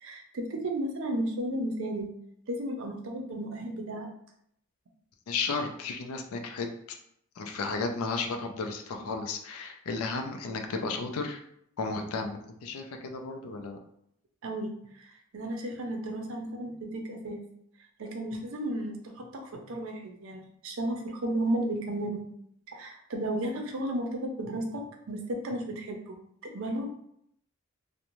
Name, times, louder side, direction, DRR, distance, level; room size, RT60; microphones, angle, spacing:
voice 1, 0.0-2.1 2.5-4.1 14.4-17.4 18.0-22.2 22.7-26.1 26.4-26.9, right 1 dB, 65° right, 3 dB, 0.5 m, -34 dB
voice 2, 5.3-7.0 7.4-11.4 11.8-13.8, left 4 dB, 75° left, 5 dB, 0.4 m, -33 dB
2.5 x 2.1 x 2.9 m, 0.72 s
head